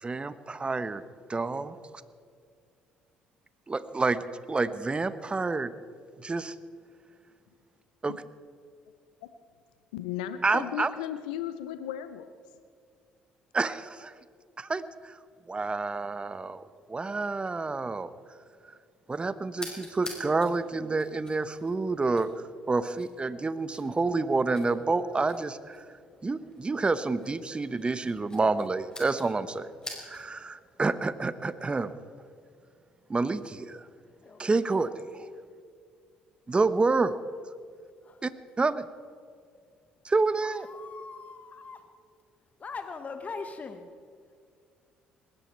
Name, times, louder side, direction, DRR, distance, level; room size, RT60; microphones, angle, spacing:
voice 1, 0.0-1.0 1.3-1.8 3.7-4.2 4.5-5.7 6.2-6.5 8.0-8.2 10.4-10.9 13.5-14.1 14.6-15.2 15.5-18.1 19.1-25.8 26.2-29.7 30.0-31.9 33.1-33.9 34.4-35.3 36.5-37.2 38.2-38.3 38.6-38.9 40.0-40.7, right 3 dB, 25° right, 14 dB, 1.0 m, -28 dB
voice 2, 9.9-12.3, left 11 dB, 85° left, 11 dB, 0.6 m, -35 dB
sound 1, 19.5-30.4, left 2 dB, 20° left, 5.3 m, -48 dB
voice 3, 34.0-34.5 38.0-38.3 40.4-41.8 42.6-43.9, left 4 dB, 40° left, 8 dB, 1.3 m, -41 dB
20.0 x 16.5 x 4.5 m, 2.2 s
hypercardioid pair, 55°, 4 cm